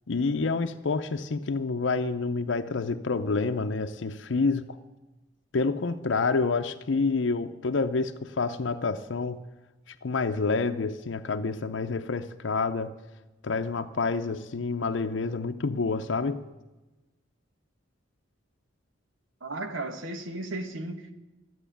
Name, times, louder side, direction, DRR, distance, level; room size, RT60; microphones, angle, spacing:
voice 1, 0.1-4.8 5.5-9.4 9.9-12.9 13.4-16.4, left 4 dB, 70° left, 0.6 m, -28 dB
voice 2, 19.4-21.1, right 2 dB, 90° right, 1.4 m, -35 dB
12.5 x 9.2 x 10.0 m
head